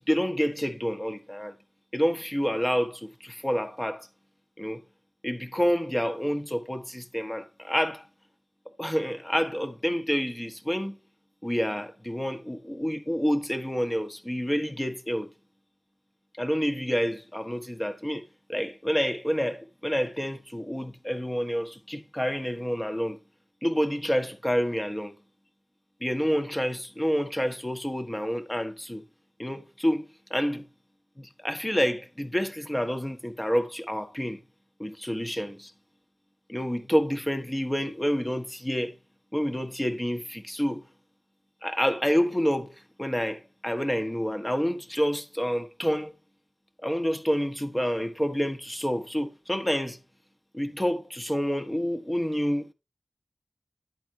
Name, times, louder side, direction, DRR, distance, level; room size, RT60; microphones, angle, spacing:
voice 1, 0.1-1.5 1.9-4.1 4.6-4.8 5.2-8.0 8.8-11.0 11.4-15.3 16.4-18.2 18.5-23.2 23.6-25.1 26.0-29.0 29.4-30.7 31.2-34.4 34.8-35.7 36.5-39.0 39.3-40.8 41.6-46.1 46.8-50.0 50.5-52.7, equal, 15° left, 1.5 m, -28 dB
11.0 x 8.5 x 2.8 m
wide cardioid pair, 50°, 0 cm